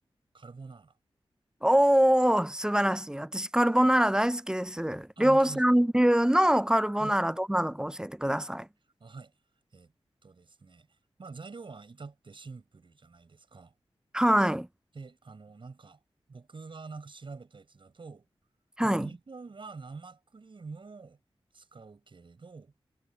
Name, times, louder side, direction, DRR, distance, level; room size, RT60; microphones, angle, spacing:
voice 1, 0.3-0.9 5.2-5.6 7.0-7.2 9.0-9.3 9.7-9.9 10.2-10.9 11.2-13.7 14.9-16.0 16.3-18.3 18.8-21.2 21.5-22.7, right 4 dB, 60° right, 6.9 m, -46 dB
voice 2, 1.6-8.7 14.1-14.7 18.8-19.1, equal, 5° right, 0.4 m, -24 dB
wide cardioid pair, 70°, 10 cm